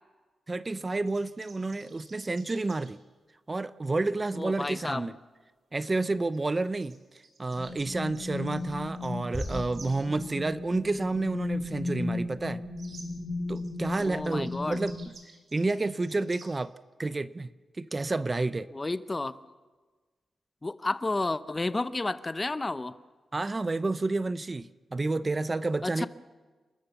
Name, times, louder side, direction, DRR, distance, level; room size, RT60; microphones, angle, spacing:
voice 1, 0.5-3.0 3.5-5.1 5.7-7.0 7.4-12.6 13.5-15.0 15.5-16.7 17.0-17.5 17.8-18.7 23.3-26.1, right 3 dB, 30° right, 15 dB, 0.6 m, -30 dB
sound 1, 1.0-2.9 6.2-6.4 6.7-10.0 12.8-13.1 13.5-16.6, right 4 dB, 55° right, 4.0 m, -52 dB
voice 2, 4.3-5.1 14.0-14.8 18.7-19.4 20.6-22.9 25.8-26.1, left 2 dB, 25° left, 14 dB, 0.8 m, -31 dB
sound 2, 7.5-15.0, left 3 dB, 75° left, 3.9 m, -36 dB
sound 3, 9.3-10.9, equal, 5° left, 2.1 m, -39 dB
29.0 x 12.5 x 7.2 m, 1.3 s
cardioid pair, 80°, 0 cm